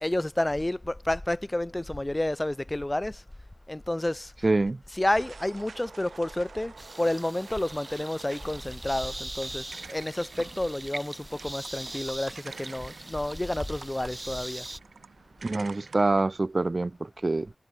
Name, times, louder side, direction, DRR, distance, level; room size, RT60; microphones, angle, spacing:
voice 1, 0.0-3.2 3.7-4.3 4.9-14.6, left 1 dB, 20° left, 0.8 m, -30 dB
voice 2, 4.4-4.8 15.4-17.5, right 2 dB, 40° right, 0.8 m, -26 dB
sound 1, 5.2-16.2, right 4 dB, 85° right, 7.0 m, -48 dB
sound 2, 6.8-14.8, right 2 dB, 25° right, 4.4 m, -41 dB
wide cardioid pair, 65°, 0 cm